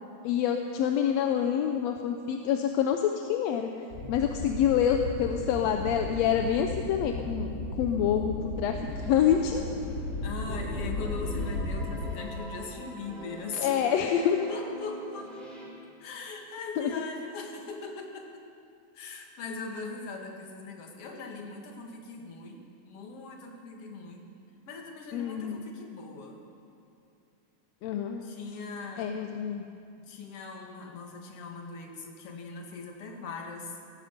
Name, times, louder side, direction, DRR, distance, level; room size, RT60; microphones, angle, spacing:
voice 1, 0.2-3.7 4.1-7.5 7.8-8.8 9.0-9.6 13.6-14.4 16.8-16.9 25.1-25.6 27.8-28.2 29.0-29.6, left 9 dB, 75° left, 4 dB, 1.7 m, -27 dB
sound 1, 3.9-12.0, left 2 dB, 35° left, 2.0 m, -35 dB
sound 2, 8.9-10.2 10.5-15.6, equal, ahead, 4.1 m, -43 dB
voice 2, 10.2-13.8 14.5-15.3 16.0-18.4 18.9-24.3 24.7-26.4 28.2-29.1 30.1-33.8, left 4 dB, 55° left, 2 dB, 2.4 m, -40 dB
16.5 x 15.5 x 5.2 m, 2.5 s
omnidirectional pair, 3.4 m